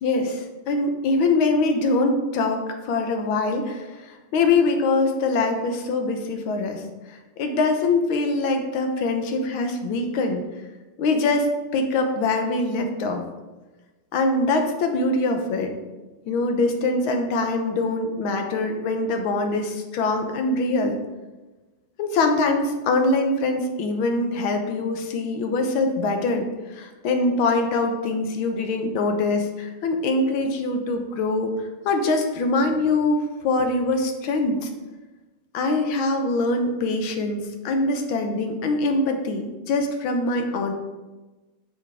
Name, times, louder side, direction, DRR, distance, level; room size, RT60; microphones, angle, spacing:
voice 1, 0.0-6.8 7.1-10.4 11.0-13.2 14.1-15.7 16.2-21.0 22.0-31.5 31.8-34.7 35.5-40.7, left 2 dB, 75° left, 5 dB, 1.7 m, -23 dB
8.2 x 7.2 x 3.5 m, 1.2 s
omnidirectional pair, 2.3 m